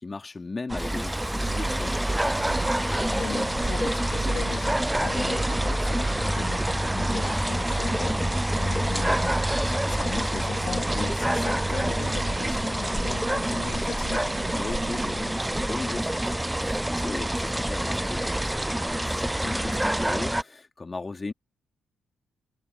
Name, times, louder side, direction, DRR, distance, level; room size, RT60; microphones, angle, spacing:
voice 1, 0.0-2.0 6.9-7.2 9.5-10.0 14.5-21.3, left 3 dB, 30° left, 2.7 m, -37 dB
sound 1, 0.7-20.4, right 1 dB, 10° right, 0.4 m, -26 dB
Hiss, 0.8-8.2, right 2 dB, 25° right, 7.3 m, -57 dB
sound 2, 2.4-18.6, right 10 dB, 65° right, 7.9 m, -43 dB
voice 2, 3.0-6.6 6.9-9.4 9.9-14.2, left 7 dB, 55° left, 2.9 m, -38 dB
hypercardioid pair, 40°, 0 cm